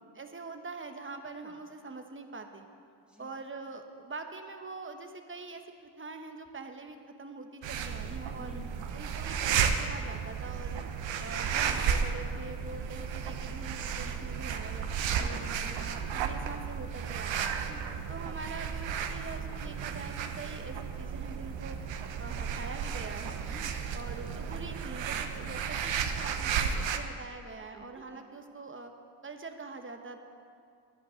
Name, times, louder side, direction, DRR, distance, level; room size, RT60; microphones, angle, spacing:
voice 1, 0.1-2.7 3.2-8.6 8.9-10.8 11.2-17.6 18.1-21.8 22.2-23.4 23.9-28.9 29.2-30.2, right 3 dB, 25° right, 6 dB, 1.1 m, -44 dB
voice 2, 1.2-1.5 3.1-3.4 8.4-8.9 10.8-11.2 15.2-15.9 17.7-18.3 23.3-24.0 24.5-24.6 26.7-27.0 27.7-28.2, left 1 dB, ahead, -3 dB, 2.5 m, -52 dB
sound 1, 7.6-27.0, right 7 dB, 75° right, 0.8 m, -33 dB
11.0 x 5.4 x 8.6 m, 2.4 s
supercardioid pair, 65°, 46 cm